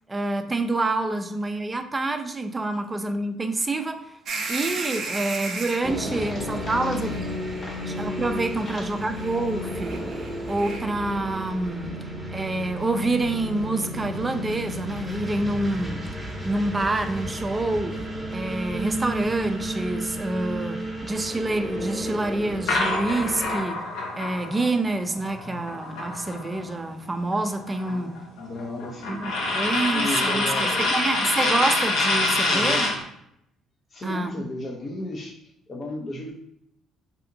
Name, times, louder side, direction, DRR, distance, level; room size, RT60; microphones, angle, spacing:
voice 1, 0.1-4.1 4.5-7.3 7.8-10.0 10.5-11.9 12.3-16.0 16.4-18.0 18.3-23.8 24.1-28.2 29.1-32.9 34.0-34.4, right 2 dB, 20° right, 7 dB, 0.4 m, -27 dB
sound 1, 4.2-5.9 7.1-7.2 9.1-9.4 9.7-10.8, right 3 dB, 60° right, 0.6 m, -33 dB
sound 2, 5.8-23.6, equal, 5° right, 0.9 m, -32 dB
voice 2, 6.1-6.9 7.6-7.8 8.6-8.9 27.9-29.2 29.9-30.9 32.5-33.0 33.9-36.3, left 1 dB, 40° left, -1 dB, 0.6 m, -35 dB
sound 3, 22.7-26.7 27.1-33.0, left 2 dB, 80° left, 0.8 m, -26 dB
2.8 x 2.4 x 3.7 m, 0.74 s
supercardioid pair, 85°, 0 cm